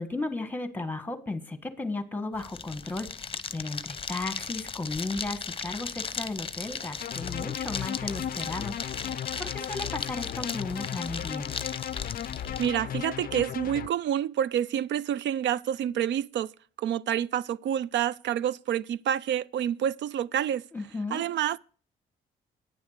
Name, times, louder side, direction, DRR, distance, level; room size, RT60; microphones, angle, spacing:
voice 1, 0.0-3.1 3.5-8.7 9.4-11.5 20.7-21.2, left 2 dB, 10° left, 1.5 m, -34 dB
sound 1, 2.3-12.7, left 5 dB, 25° left, 0.8 m, -37 dB
sound 2, 7.0-13.9, left 10 dB, 50° left, 0.4 m, -36 dB
voice 2, 12.6-16.5 16.8-20.6 21.1-21.6, right 10 dB, 65° right, 0.4 m, -28 dB
9.6 x 7.0 x 6.6 m
cardioid pair, 90°, 20 cm